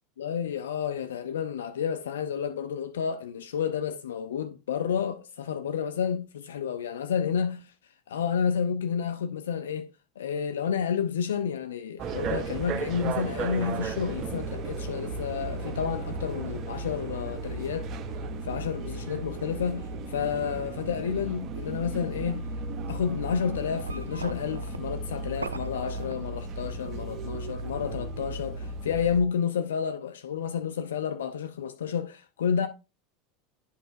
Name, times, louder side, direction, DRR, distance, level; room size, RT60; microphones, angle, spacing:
voice 1, 0.2-7.7 8.1-9.9 10.2-17.9 18.4-22.4 22.9-32.7, left 7 dB, 70° left, 0.4 m, -30 dB
sound 1, 12.0-29.2, right 3 dB, 40° right, 0.7 m, -35 dB
sound 2, 22.7-22.9 23.3-26.8 27.1-28.1, right 3 dB, 85° right, 0.4 m, -40 dB
11.0 x 5.5 x 2.5 m
figure-of-eight pair, 75°, 0 cm